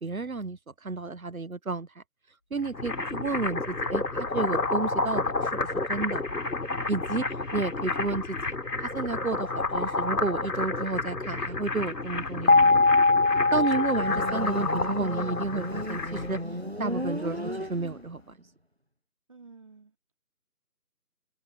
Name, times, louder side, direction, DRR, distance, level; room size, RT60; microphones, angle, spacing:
voice 1, 0.0-2.0 2.5-5.5 5.9-6.2 6.9-7.2 7.5-12.8 13.5-16.4 16.8-18.2, right 3 dB, 60° right, 1.3 m, -31 dB
sound 1, 2.5-16.4, left 3 dB, 85° left, 3.4 m, -31 dB
sound 2, 12.5-15.4, left 3 dB, 60° left, 0.9 m, -22 dB
Motorcycle, 13.9-18.3, equal, 45° right, 0.5 m, -35 dB
voice 2, 19.3-20.1, right 4 dB, 20° right, 3.2 m, -52 dB
open air
figure-of-eight pair, 175°, 47 cm